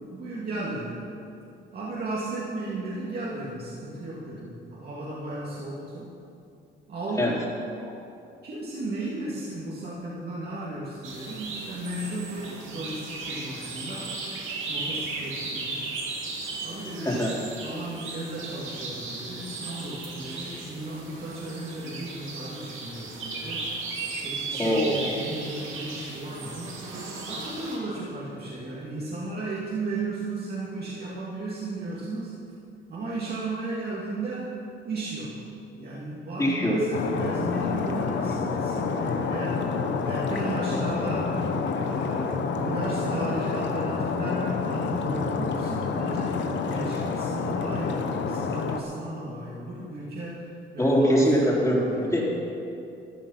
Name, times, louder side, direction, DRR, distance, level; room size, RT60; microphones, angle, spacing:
voice 1, 0.1-1.1 1.7-6.1 6.9-7.4 8.4-14.1 14.7-15.9 16.6-23.7 24.1-26.8 27.3-32.3 32.9-34.5 34.8-35.4 35.7-41.4 41.8-50.5 50.7-52.2, right 2 dB, 50° right, -6 dB, 2.5 m, -35 dB
sound 1, 11.0-27.8, right 3 dB, 80° right, 2.6 m, -36 dB
voice 2, 17.0-17.3 24.6-25.0 36.4-36.8 50.8-52.5, equal, 15° left, -4 dB, 3.6 m, -23 dB
Stream, 36.9-48.8, left 5 dB, 65° left, 1.1 m, -28 dB
14.0 x 10.0 x 5.9 m, 2.7 s
cardioid pair, 90°, 20 cm